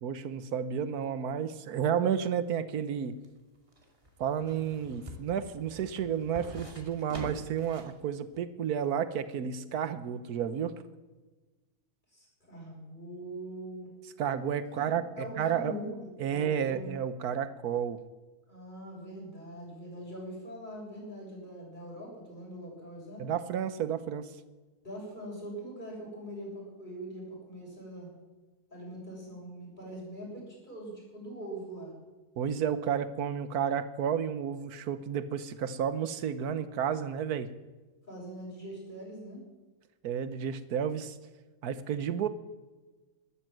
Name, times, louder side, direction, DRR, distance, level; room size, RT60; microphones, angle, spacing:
voice 1, 0.0-3.1 4.2-10.7 14.2-15.8 16.2-18.0 23.2-24.3 32.4-37.5 40.0-41.2 41.6-42.3, right 8 dB, 75° right, 12 dB, 1.4 m, -31 dB
sound 1, 2.9-8.0 8.3-8.4, equal, 20° right, 2.6 m, -46 dB
voice 2, 12.1-13.9 14.7-16.9 18.5-23.2 24.8-28.1 28.7-31.9 38.1-39.4, right 1 dB, 30° left, -3 dB, 7.4 m, -42 dB
13.0 x 13.0 x 7.6 m, 1.2 s
omnidirectional pair, 1.6 m